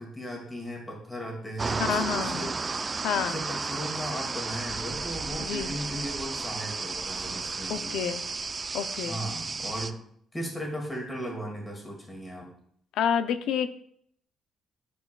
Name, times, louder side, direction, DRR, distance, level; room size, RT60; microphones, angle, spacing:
voice 1, 0.0-2.6 3.1-8.0 9.0-10.0 10.3-12.5, equal, 15° left, 0 dB, 1.9 m, -36 dB
sound 1, 1.6-9.9, right 4 dB, 30° right, 0.4 m, -33 dB
voice 2, 1.8-2.5 3.0-3.4 5.4-5.7 7.7-8.2 8.7-9.2 13.0-13.8, left 8 dB, 85° left, 11 dB, 0.4 m, -29 dB
11.0 x 4.7 x 2.2 m, 0.66 s
cardioid pair, 90°, 0 cm